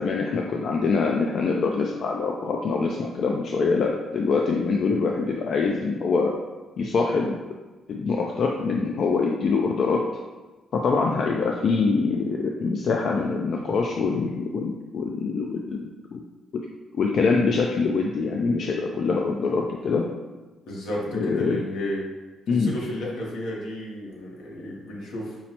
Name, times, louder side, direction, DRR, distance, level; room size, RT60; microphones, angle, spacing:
voice 1, 0.0-6.3 6.8-7.4 7.9-10.0 10.7-16.2 16.9-20.0 21.1-21.6 22.5-22.7, left 4 dB, 60° left, 0 dB, 0.3 m, -24 dB
voice 2, 20.7-22.0 22.5-25.4, left 1 dB, 85° left, -3 dB, 1.0 m, -32 dB
5.4 x 2.1 x 2.9 m, 1.2 s
cardioid pair, 90°, 0 cm